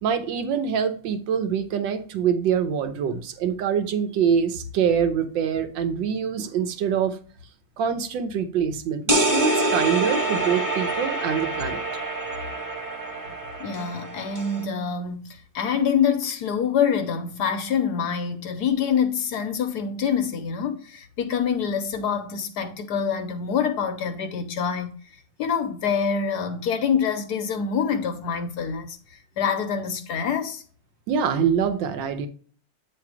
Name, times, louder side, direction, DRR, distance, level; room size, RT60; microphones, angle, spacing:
voice 1, 0.0-7.2 7.8-11.8 31.1-32.3, right 7 dB, 70° right, 1.4 m, -25 dB
sound 1, 9.1-14.6, right 2 dB, 10° right, 1.2 m, -26 dB
voice 2, 13.6-24.9 25.4-30.6, left 7 dB, 70° left, 1.0 m, -26 dB
8.6 x 3.3 x 4.7 m
omnidirectional pair, 2.3 m